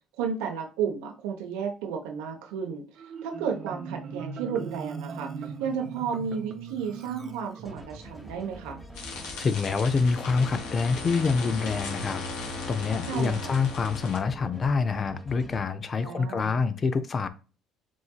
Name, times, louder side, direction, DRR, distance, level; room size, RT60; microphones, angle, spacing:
voice 1, 0.2-2.8 3.2-5.3 5.6-8.9 13.1-13.6 16.0-16.6, right 7 dB, 85° right, 1.1 m, -32 dB
Marimba xylophone, 3.0-8.1, right 6 dB, 45° right, 0.8 m, -39 dB
sound 1, 7.6-15.6, left 1 dB, 5° left, 1.1 m, -45 dB
sound 2, 8.9-14.2, left 3 dB, 75° left, 1.4 m, -37 dB
voice 2, 9.4-17.3, left 4 dB, 35° left, 0.6 m, -26 dB
7.4 x 2.7 x 2.4 m
supercardioid pair, 85°, 0 cm